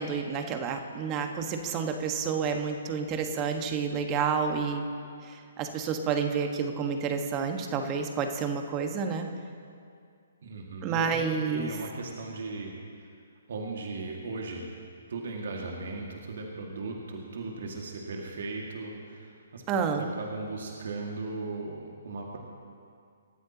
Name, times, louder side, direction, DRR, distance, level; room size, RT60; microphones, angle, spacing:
voice 1, 0.0-4.8 5.2-9.3 10.8-11.7 19.7-20.1, right 6 dB, 25° right, 5 dB, 1.5 m, -29 dB
voice 2, 10.4-11.2 11.5-12.7 13.0-13.1 13.5-14.7 15.1-19.6 19.9-22.4, right 3 dB, 55° right, 0 dB, 2.1 m, -37 dB
27.5 x 13.5 x 3.0 m, 2.3 s
figure-of-eight pair, 130°, 0 cm